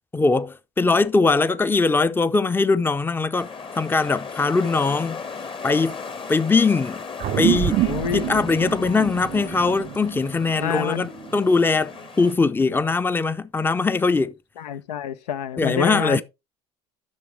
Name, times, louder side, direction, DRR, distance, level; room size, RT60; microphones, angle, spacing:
voice 1, 0.1-3.5 3.8-5.2 5.6-6.0 6.3-7.0 7.4-7.8 8.1-14.3 15.6-16.2, left 4 dB, 10° left, 0.5 m, -21 dB
sound 1, 3.4-12.3, left 5 dB, 25° left, 0.9 m, -37 dB
sound 2, 7.2-12.0, right 14 dB, 40° right, 0.5 m, -27 dB
sound 3, 7.3-9.7 10.2-12.1 12.4-13.0, left 7 dB, 50° left, 1.5 m, -45 dB
voice 2, 7.8-8.5 10.6-11.1 14.6-16.2, left 9 dB, 80° left, 0.6 m, -28 dB
10.5 x 6.2 x 3.2 m
hypercardioid pair, 75°, 20 cm